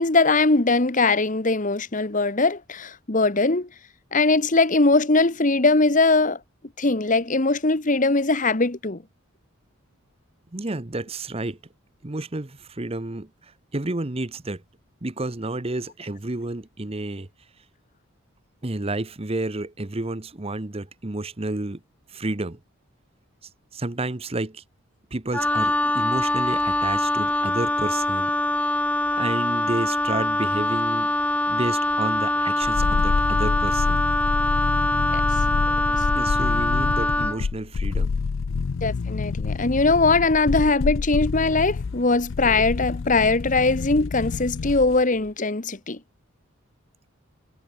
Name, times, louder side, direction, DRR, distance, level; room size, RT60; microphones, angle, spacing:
voice 1, 0.0-3.7 4.1-6.4 6.8-9.0 35.1-35.2 35.9-36.0 38.8-46.0, left 3 dB, 40° left, 1.3 m, -21 dB
voice 2, 10.5-11.6 12.0-13.3 13.7-14.6 15.0-17.3 18.6-21.8 22.1-22.6 23.7-24.6 25.1-28.6 29.1-31.1 31.5-34.0 36.1-38.1, right 2 dB, 30° right, 1.0 m, -30 dB
Wind instrument woodwind instrument, 25.3-37.4, left 1 dB, 5° left, 1.8 m, -23 dB
sound 1, 32.6-45.0 45.3-45.4, left 4 dB, 65° left, 0.5 m, -27 dB
head